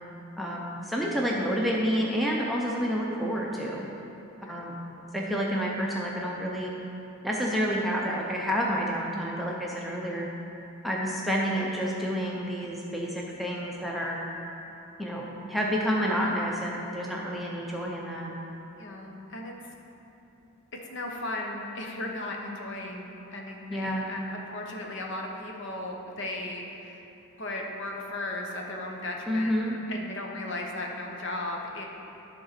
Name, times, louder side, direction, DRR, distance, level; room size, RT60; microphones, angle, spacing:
voice 1, 0.4-3.8 4.4-4.8 5.1-6.7 7.2-10.3 10.8-14.2 15.0-18.3 23.7-24.1 29.3-29.8, equal, ahead, -4 dB, 0.6 m, -29 dB
voice 2, 18.8-19.6 20.7-27.1 27.4-29.6 29.9-31.8, left 2 dB, 55° left, 0 dB, 0.9 m, -36 dB
11.0 x 3.7 x 5.8 m, 3.0 s
head